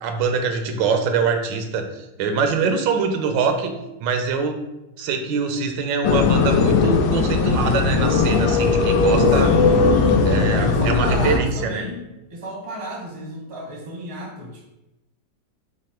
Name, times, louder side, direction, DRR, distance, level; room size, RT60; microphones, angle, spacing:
voice 1, 0.0-3.7 4.0-4.6 5.0-9.5 10.3-11.9, right 5 dB, 85° right, 6 dB, 1.3 m, -24 dB
sound 1, 6.0-11.4, left 4 dB, 90° left, 1.3 m, -18 dB
voice 2, 9.2-12.0 12.3-14.7, equal, 35° right, -1 dB, 0.5 m, -32 dB
4.9 x 2.1 x 4.3 m, 0.95 s
omnidirectional pair, 1.9 m